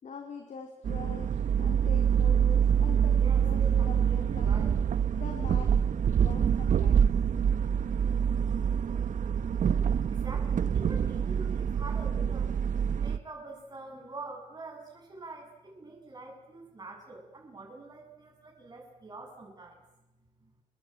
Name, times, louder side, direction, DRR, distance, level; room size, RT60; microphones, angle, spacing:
voice 1, 0.0-4.7 5.1-5.8 6.2-7.1, left 5 dB, 65° left, 3 dB, 4.1 m, -44 dB
sound 1, 0.8-13.2, right 8 dB, 80° right, 1.1 m, -26 dB
voice 2, 3.2-4.7 8.4-8.5 10.0-12.5 13.0-19.8 20.4-20.5, right 3 dB, 30° right, 0 dB, 7.7 m, -45 dB
29.0 x 22.5 x 9.1 m, 0.89 s
wide cardioid pair, 130°, 13 cm